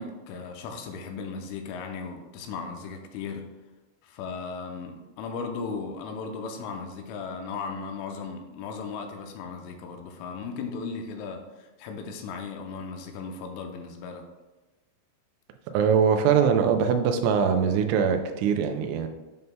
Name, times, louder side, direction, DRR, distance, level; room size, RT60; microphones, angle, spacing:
voice 1, 0.0-3.5 4.0-14.2, left 5 dB, 85° left, 4 dB, 3.1 m, -36 dB
voice 2, 15.7-19.1, right 7 dB, 85° right, 6 dB, 3.0 m, -22 dB
9.3 x 5.4 x 2.2 m, 1.2 s
omnidirectional pair, 5.6 m